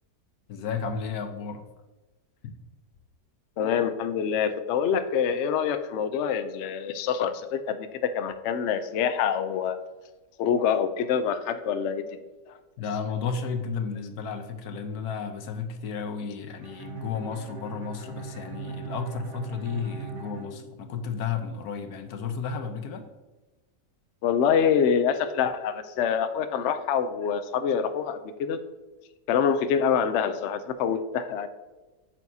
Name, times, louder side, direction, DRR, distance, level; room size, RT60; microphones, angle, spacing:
voice 1, 0.5-1.6 2.4-2.6 12.8-23.0, left 6 dB, 65° left, 6 dB, 1.2 m, -33 dB
voice 2, 3.6-9.8 10.4-12.0 24.2-28.6 29.3-31.5, left 7 dB, 85° left, 9 dB, 0.6 m, -26 dB
Bowed string instrument, 16.6-21.4, right 5 dB, 80° right, 1.6 m, -40 dB
9.0 x 7.3 x 2.7 m, 1.2 s
omnidirectional pair, 1.9 m